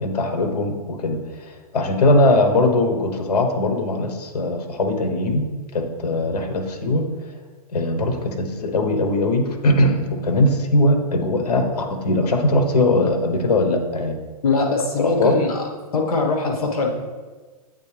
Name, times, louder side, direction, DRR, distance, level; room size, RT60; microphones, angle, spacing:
voice 1, 0.0-5.5 5.7-7.0 7.7-14.2 15.0-15.4, left 1 dB, 85° left, 5 dB, 0.9 m, -20 dB
voice 2, 14.4-15.6 15.9-16.9, left 3 dB, 70° left, 2 dB, 1.2 m, -21 dB
8.3 x 3.6 x 3.3 m, 1.3 s
hypercardioid pair, 130°, 20 cm